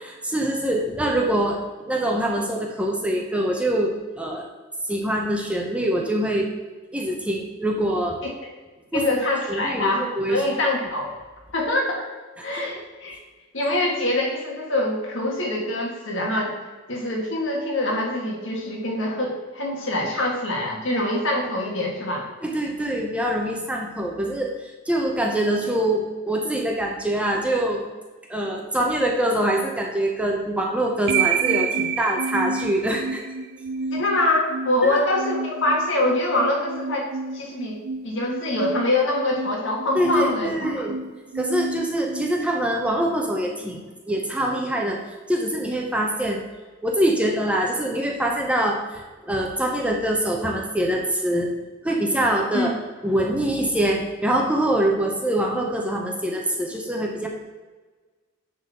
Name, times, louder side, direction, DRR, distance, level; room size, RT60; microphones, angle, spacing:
voice 1, 0.0-4.4 4.9-6.5 6.9-8.2 8.9-9.1 9.5-10.4 12.4-12.8 22.4-27.8 28.3-33.2 34.8-35.0 39.9-41.0 41.3-43.8 44.1-45.0 45.3-46.4 46.8-51.5 51.8-52.7 53.0-57.3, right 1 dB, 5° right, 0 dB, 0.8 m, -24 dB
voice 2, 8.9-11.1 11.5-12.1 12.4-13.2 13.5-16.5 16.9-22.2 33.9-37.1 37.3-37.8 38.0-40.8 52.5-52.7, left 1 dB, 65° left, -1 dB, 1.9 m, -24 dB
sound 1, 31.1-43.1, right 5 dB, 55° right, 0.4 m, -30 dB
10.0 x 4.0 x 4.2 m, 1.3 s
head